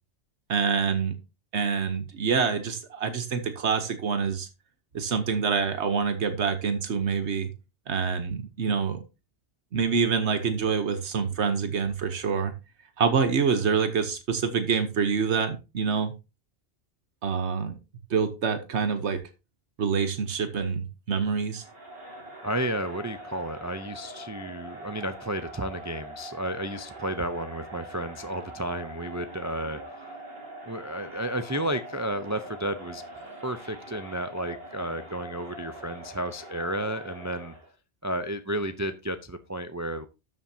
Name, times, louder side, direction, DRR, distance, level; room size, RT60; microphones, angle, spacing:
voice 1, 0.5-1.1 1.5-4.5 4.9-7.5 7.9-9.0 9.7-12.5 13.0-16.1 17.2-17.8 18.1-19.2 19.8-21.6, right 6 dB, 85° right, 9 dB, 1.3 m, -26 dB
Crowd, 21.5-37.7, right 1 dB, 60° right, 3.4 m, -43 dB
voice 2, 22.4-30.1 30.7-37.5 38.0-40.0, right 1 dB, 25° right, 10 dB, 0.4 m, -32 dB
12.5 x 7.5 x 2.8 m, 0.27 s
omnidirectional pair, 1.1 m